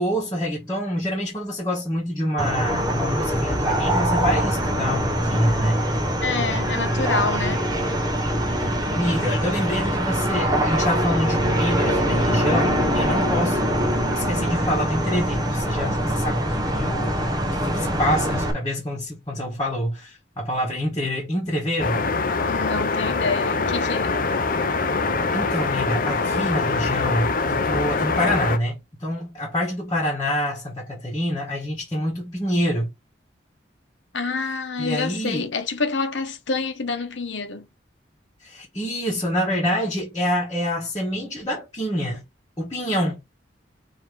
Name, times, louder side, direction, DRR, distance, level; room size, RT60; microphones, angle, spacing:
voice 1, 0.0-5.8 8.6-13.7 14.1-17.3 17.6-22.0 25.3-32.9 34.8-35.5 38.4-42.2 42.6-43.2, equal, 20° left, 1.4 m, -26 dB
sound 1, 2.4-18.5, equal, 20° right, 0.9 m, -23 dB
voice 2, 6.2-7.6 9.3-9.4 22.5-24.1 34.1-37.7, left 4 dB, 80° left, 1.0 m, -27 dB
sound 2, 21.8-28.6, left 4 dB, 45° left, 0.6 m, -24 dB
4.6 x 2.9 x 3.4 m
head